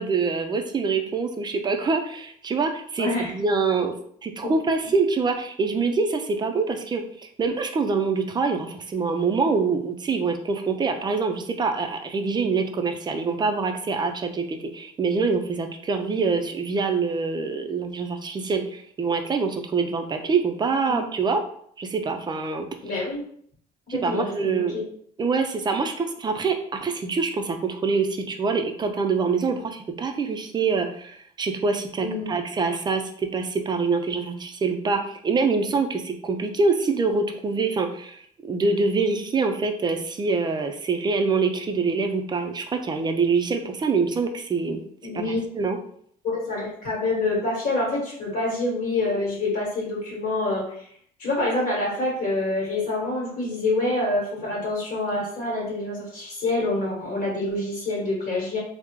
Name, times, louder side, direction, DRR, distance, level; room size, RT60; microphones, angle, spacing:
voice 1, 0.0-3.9 4.2-21.4 21.8-22.7 23.9-24.8 25.2-44.8 45.1-45.8, right 4 dB, 25° right, 6 dB, 0.4 m, -25 dB
voice 2, 3.0-3.3 4.4-4.5 20.9-21.0 22.8-23.2 23.9-24.8 32.0-32.3 45.0-45.4 46.2-50.9 51.2-58.6, left 2 dB, 55° left, -4 dB, 1.3 m, -26 dB
3.5 x 2.0 x 2.9 m, 0.63 s
cardioid pair, 110°, 17 cm